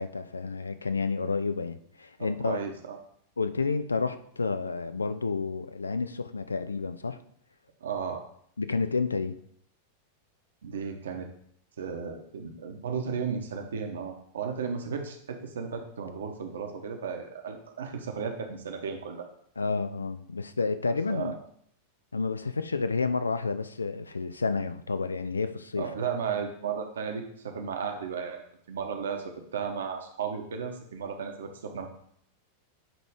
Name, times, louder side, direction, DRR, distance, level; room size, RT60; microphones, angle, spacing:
voice 1, 0.0-2.6 3.4-7.2 8.6-9.4 19.6-21.4 22.1-25.8, left 4 dB, 75° left, 11 dB, 0.4 m, -30 dB
voice 2, 2.2-3.0 7.8-8.2 10.6-11.3 11.8-19.3 21.1-21.3 25.8-28.4 28.7-29.2 29.5-31.9, right 6 dB, 65° right, 4 dB, 1.0 m, -34 dB
8.9 x 3.1 x 4.9 m, 0.67 s
figure-of-eight pair, 90°, 0 cm